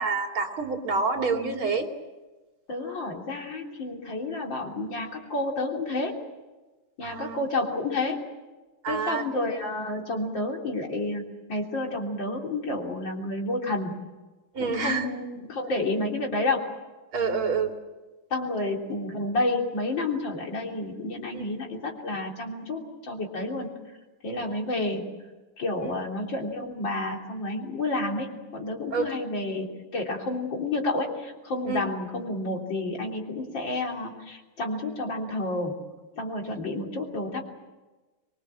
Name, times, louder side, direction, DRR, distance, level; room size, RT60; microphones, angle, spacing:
voice 1, 0.0-1.9 7.0-7.4 8.8-9.2 14.6-15.1 17.1-17.7 21.3-21.5 24.3-24.6 25.8-26.0 28.9-29.1 31.7-31.8, right 4 dB, 70° right, 3 dB, 3.6 m, -28 dB
voice 2, 2.7-6.2 7.0-8.2 8.9-13.9 14.6-16.7 18.3-23.7 24.2-25.0 25.6-28.3 28.5-35.7 36.2-37.4, left 2 dB, 60° left, 1 dB, 4.0 m, -30 dB
25.0 x 22.5 x 7.5 m, 1.2 s
omnidirectional pair, 2.4 m